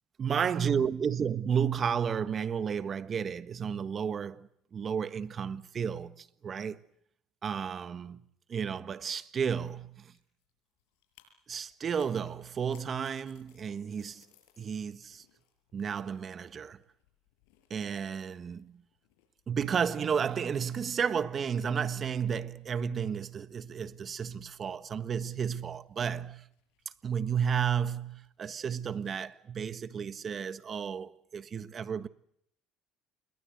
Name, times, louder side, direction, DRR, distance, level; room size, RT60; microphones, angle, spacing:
voice 1, 0.2-6.8 7.4-8.2 8.5-10.1 11.5-14.2 14.6-15.2 15.7-16.8 17.7-18.8 19.5-26.5 27.0-32.1, right 7 dB, 35° right, 1.4 m, -32 dB
sound 1, 10.1-29.4, left 11 dB, 90° left, 7.0 m, -69 dB
28.0 x 22.0 x 8.1 m
supercardioid pair, 105°, 0 cm